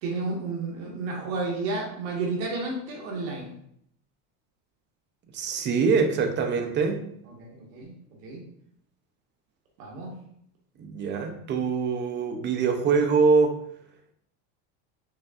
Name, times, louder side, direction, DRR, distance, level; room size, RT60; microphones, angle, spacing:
voice 1, 0.0-3.5 7.2-8.4 9.8-10.1, right 3 dB, 85° right, -2 dB, 1.3 m, -32 dB
voice 2, 5.3-7.0 10.8-13.6, right 5 dB, 30° right, 5 dB, 0.5 m, -24 dB
5.4 x 2.6 x 2.3 m, 0.71 s
supercardioid pair, 130°, 41 cm